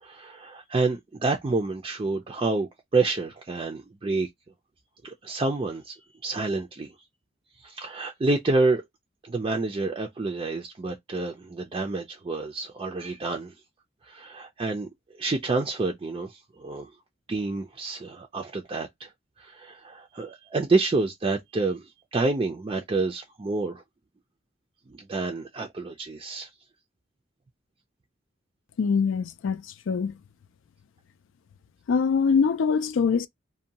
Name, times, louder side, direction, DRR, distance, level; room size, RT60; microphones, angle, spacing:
voice 1, 0.0-4.3 5.0-6.9 7.6-8.8 9.2-13.5 14.0-14.9 15.1-16.9 17.3-19.1 19.4-23.8 24.9-26.5, right 3 dB, 25° right, 0.4 m, -28 dB
voice 2, 28.8-30.1 31.9-33.3, left 5 dB, 80° left, 0.4 m, -23 dB
2.6 x 2.2 x 2.8 m
head